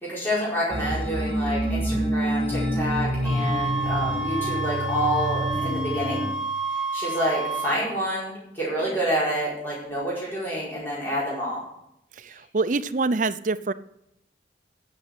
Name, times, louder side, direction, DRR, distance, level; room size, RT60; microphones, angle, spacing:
voice 1, 0.0-6.3 6.9-11.6, equal, 10° left, -7 dB, 4.6 m, -28 dB
sound 1, 0.7-6.3, right 1 dB, 30° left, 1.9 m, -27 dB
sound 2, 3.2-7.8, right 3 dB, 5° right, 1.0 m, -30 dB
voice 2, 12.2-13.7, right 3 dB, 45° right, 12 dB, 0.6 m, -25 dB
9.8 x 7.4 x 8.0 m, 0.79 s
head